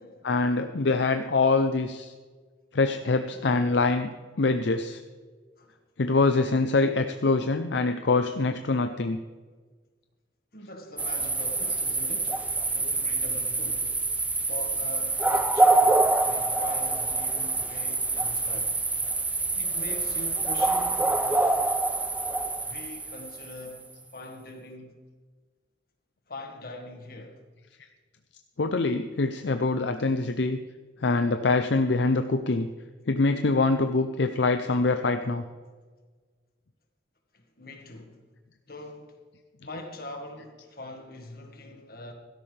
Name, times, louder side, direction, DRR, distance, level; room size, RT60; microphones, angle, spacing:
voice 1, 0.2-2.1 2.7-4.1 4.4-5.0 6.0-9.2 28.6-30.6 31.0-32.7 33.1-35.4, left 3 dB, 70° left, 0.6 m, -24 dB
voice 2, 10.5-12.4 12.7-13.9 14.4-18.8 19.5-21.8 22.6-25.0 26.3-27.4 37.3-38.3 38.7-39.2 39.6-42.1, left 1 dB, 50° left, 1.9 m, -43 dB
sound 1, 11.0-23.8, right 2 dB, 10° right, 0.5 m, -26 dB
16.5 x 13.0 x 3.4 m
head